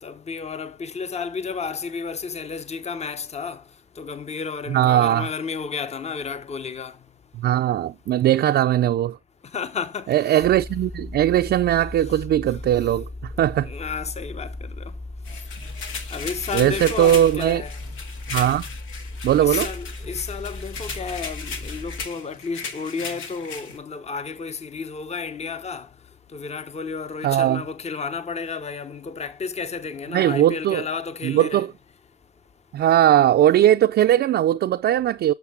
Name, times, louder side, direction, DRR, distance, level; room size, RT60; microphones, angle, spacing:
voice 1, 0.0-3.6 4.0-7.0 9.5-10.4 12.1-12.2 13.6-14.8 16.1-17.7 19.4-25.9 26.3-31.7, left 5 dB, 35° left, 0.9 m, -32 dB
voice 2, 4.7-5.3 7.3-9.2 10.1-13.7 16.5-17.6 18.3-18.7 19.2-19.7 27.2-27.6 30.1-30.9 31.2-31.7 32.7-35.3, right 12 dB, 60° right, 0.4 m, -19 dB
sound 1, 10.4-22.1, left 2 dB, ahead, 0.5 m, -37 dB
sound 2, 15.2-23.8, left 5 dB, 90° left, 1.7 m, -36 dB
7.3 x 6.6 x 3.7 m
cardioid pair, 90°, 20 cm